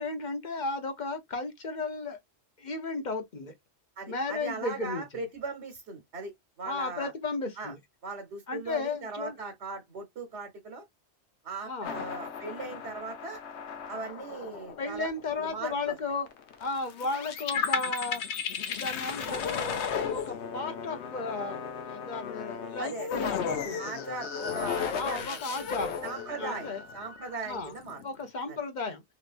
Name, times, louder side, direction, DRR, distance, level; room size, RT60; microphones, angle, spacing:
voice 1, 0.0-2.2 2.6-3.5 4.1-5.0 6.6-7.8 8.5-9.4 11.6-12.0 14.8-16.3 16.6-18.2 18.7-24.1 25.0-26.0 26.4-26.8 27.5-27.7 28.0-29.0, left 3 dB, 45° left, 0.8 m, -34 dB
voice 2, 4.0-6.3 6.6-7.1 7.6-7.7 8.0-10.8 11.4-13.4 13.9-15.1 15.4-15.9 22.8-23.1 23.8-25.4 26.0-28.0 28.5-28.6, right 3 dB, 85° right, 1.2 m, -39 dB
sound 1, 11.8-28.1, left 7 dB, 85° left, 0.9 m, -35 dB
3.2 x 3.0 x 2.4 m
omnidirectional pair, 1.1 m